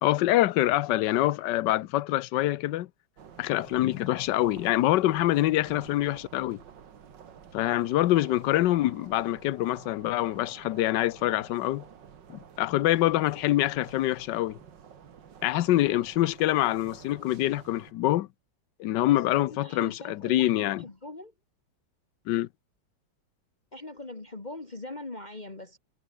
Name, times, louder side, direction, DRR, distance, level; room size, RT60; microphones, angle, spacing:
voice 1, 0.0-2.9 3.4-6.6 7.5-11.8 12.6-14.6 15.4-18.3 18.8-20.8 22.3-22.5, left 15 dB, 80° left, 1.3 m, -25 dB
sound 1, 3.2-17.9, right 7 dB, 85° right, 2.3 m, -50 dB
voice 2, 19.1-21.3 23.7-25.8, left 2 dB, 25° left, 2.1 m, -41 dB
omnidirectional pair, 1.9 m